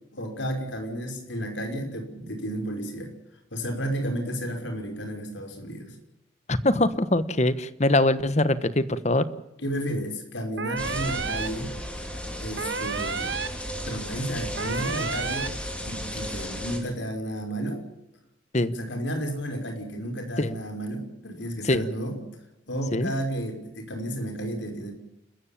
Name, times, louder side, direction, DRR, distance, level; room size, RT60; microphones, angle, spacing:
voice 1, 0.1-3.1 3.5-6.0 9.6-11.8 12.4-13.4 13.8-15.6 15.9-17.8 18.7-22.2 22.7-24.9, equal, 80° left, 4 dB, 5.7 m, -32 dB
voice 2, 6.5-9.2 18.5-18.7 20.4-20.5 21.6-21.9 22.9-23.1, left 1 dB, 35° left, 14 dB, 1.2 m, -23 dB
sound 1, 10.6-11.5 12.6-13.5 14.6-15.5, right 5 dB, 70° right, 1.2 m, -31 dB
sound 2, 10.8-16.8, equal, 5° left, 4.1 m, -34 dB
29.5 x 14.5 x 7.5 m, 0.85 s
head